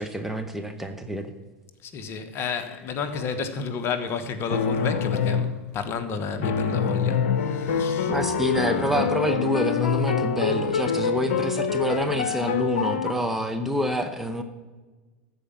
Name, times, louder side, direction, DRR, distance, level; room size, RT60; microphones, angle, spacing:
voice 1, 0.0-1.3 8.1-14.4, equal, 5° right, 0.9 m, -27 dB
voice 2, 1.8-8.1, left 5 dB, 35° left, 1.2 m, -31 dB
sound 1, 2.9-3.4 4.5-5.6 6.4-13.1, left 6 dB, 65° left, 1.0 m, -25 dB
14.0 x 4.9 x 7.2 m
hypercardioid pair, 95°, 7 cm